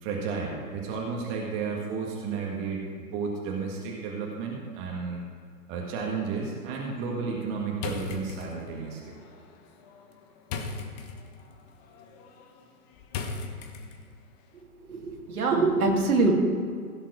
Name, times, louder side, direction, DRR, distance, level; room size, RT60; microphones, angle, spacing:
voice 1, 0.0-5.2 5.7-9.1, right 5 dB, 25° right, -1 dB, 1.7 m, -32 dB
sound 1, 7.8-14.3, left 4 dB, 25° left, 1.1 m, -39 dB
voice 2, 14.9-16.3, right 3 dB, 65° right, 1 dB, 2.8 m, -23 dB
16.0 x 5.9 x 6.3 m, 2.2 s
hypercardioid pair, 130°, 47 cm